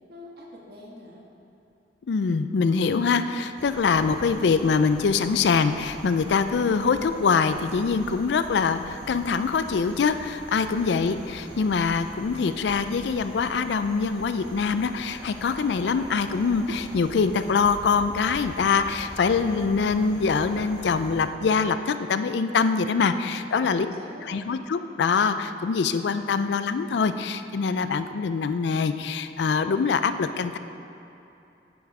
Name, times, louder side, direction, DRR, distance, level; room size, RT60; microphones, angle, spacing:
voice 1, 0.1-1.2 23.3-24.4, left 1 dB, 60° right, -2 dB, 1.4 m, -45 dB
voice 2, 2.1-23.9 24.3-30.6, left 5 dB, 75° left, 11 dB, 0.4 m, -24 dB
sound 1, 3.6-21.3, right 1 dB, 85° right, 1.5 m, -43 dB
9.4 x 5.4 x 4.8 m, 2.8 s
head